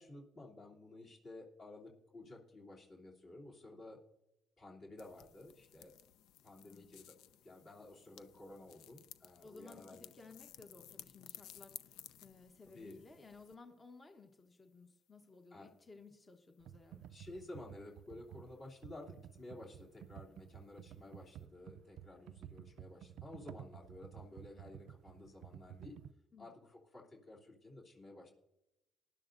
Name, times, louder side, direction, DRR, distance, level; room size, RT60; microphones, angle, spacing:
voice 1, 0.0-4.0 4.6-6.0 6.4-7.2 7.4-10.1 12.7-13.0 15.5-15.7 17.1-26.0 26.4-28.3, left 2 dB, 45° left, -2 dB, 3.0 m, -53 dB
sound 1, 5.0-13.6, left 11 dB, 85° left, 0.5 m, -57 dB
voice 2, 9.4-11.9 12.2-17.1 26.3-26.5, left 3 dB, 25° left, 4 dB, 1.1 m, -58 dB
Computer keyboard, 16.6-26.1, right 11 dB, 75° right, 0.3 m, -53 dB
19.5 x 11.0 x 2.6 m, 0.92 s
cardioid pair, 110°, 0 cm